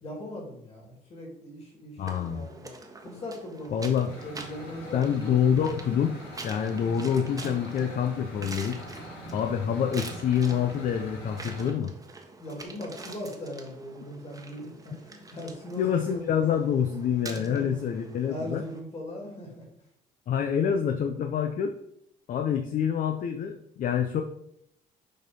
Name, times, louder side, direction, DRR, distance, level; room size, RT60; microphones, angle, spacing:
voice 1, 0.0-3.9 4.2-5.0 12.4-16.2 17.3-17.6 18.2-19.7, left 1 dB, 35° left, 0 dB, 3.0 m, -40 dB
voice 2, 2.0-2.5 3.7-4.1 4.9-6.2 6.4-8.8 9.3-11.9 15.8-18.6 20.3-21.7 22.3-24.2, left 8 dB, 50° left, 6 dB, 0.7 m, -26 dB
sound 1, 2.1-18.8, right 3 dB, 20° right, 1.2 m, -46 dB
sound 2, 4.1-11.7, right 1 dB, 75° left, 3.0 m, -43 dB
6.8 x 4.3 x 5.3 m, 0.74 s
cardioid pair, 110°, 17 cm